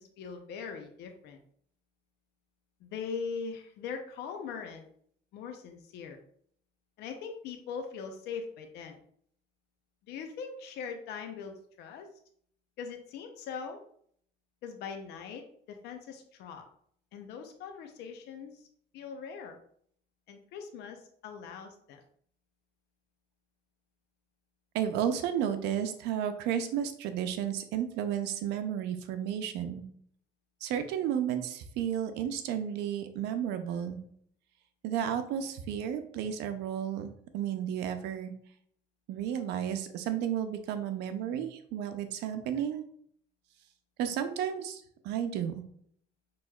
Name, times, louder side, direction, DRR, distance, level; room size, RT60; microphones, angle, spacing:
voice 1, 0.0-1.4 2.8-4.9 5.3-6.2 7.0-9.0 10.1-12.1 12.8-13.8 14.6-16.6 17.1-18.7 18.9-19.6 20.3-22.0, left 6 dB, 80° left, 5 dB, 0.6 m, -41 dB
voice 2, 24.7-29.9 30.6-34.0 34.8-38.3 39.1-42.8 44.0-45.6, right 9 dB, 90° right, 9 dB, 0.6 m, -32 dB
6.0 x 3.0 x 2.3 m, 0.64 s
cardioid pair, 110°, 17 cm